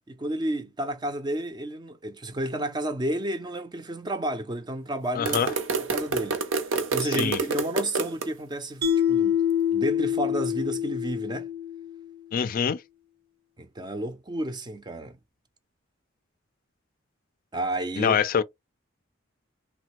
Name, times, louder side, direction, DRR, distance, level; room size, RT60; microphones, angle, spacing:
voice 1, 0.1-5.4 5.7-9.4 9.7-11.5 13.6-15.2 17.5-18.2, right 1 dB, 20° right, 0.5 m, -31 dB
voice 2, 5.2-5.5 7.2-7.4 12.3-12.8 18.0-18.4, left 7 dB, 45° left, 0.3 m, -24 dB
sound 1, 5.2-8.3, right 4 dB, 90° right, 0.7 m, -28 dB
Mallet percussion, 8.8-12.1, left 9 dB, 55° right, 0.7 m, -26 dB
3.3 x 2.2 x 2.9 m
head